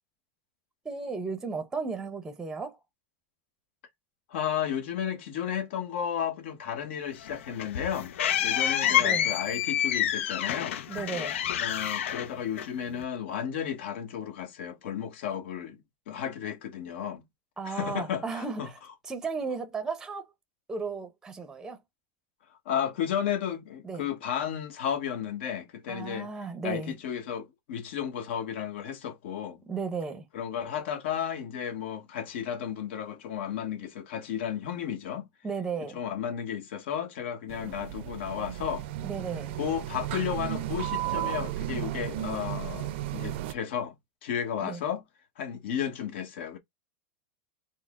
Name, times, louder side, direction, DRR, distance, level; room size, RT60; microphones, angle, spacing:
voice 1, 0.8-2.8 8.5-9.3 10.9-11.4 17.6-18.7 19.0-20.2 20.7-21.8 23.8-24.0 25.9-26.9 29.7-30.3 35.4-36.0 39.0-39.5 44.6-44.8, right 4 dB, 10° right, 0.6 m, -35 dB
voice 2, 4.3-8.1 8.4-10.8 11.6-17.3 17.6-18.7 22.6-26.3 26.6-29.6 30.3-35.2 35.9-38.9 39.5-43.9 44.2-45.0 45.4-46.6, left 9 dB, 70° left, 1.1 m, -33 dB
sound 1, 7.2-13.0, left 10 dB, 85° left, 0.5 m, -28 dB
sound 2, 37.5-43.5, right 14 dB, 65° right, 0.5 m, -34 dB
4.2 x 2.0 x 3.6 m
supercardioid pair, 150°, 7 cm